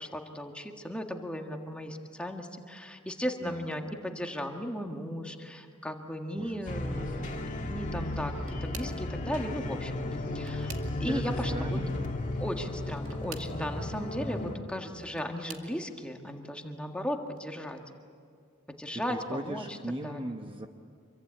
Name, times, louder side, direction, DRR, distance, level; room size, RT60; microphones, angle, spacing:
voice 1, 0.0-10.0 10.3-10.7 11.0-11.8 12.4-17.8 18.8-19.6 20.0-20.2, equal, 5° left, 3 dB, 1.7 m, -36 dB
voice 2, 6.3-7.2 11.1-12.1 18.9-20.7, right 1 dB, 25° right, 4 dB, 1.0 m, -39 dB
sound 1, 6.7-14.6, left 1 dB, 35° left, 2.1 m, -34 dB
sound 2, 8.0-9.1 10.0-11.3 12.9-13.6 14.7-15.8 16.5-16.9 17.3-17.4 18.7-18.8, right 6 dB, 65° right, 2.3 m, -48 dB
26.5 x 23.5 x 8.8 m, 2.2 s
head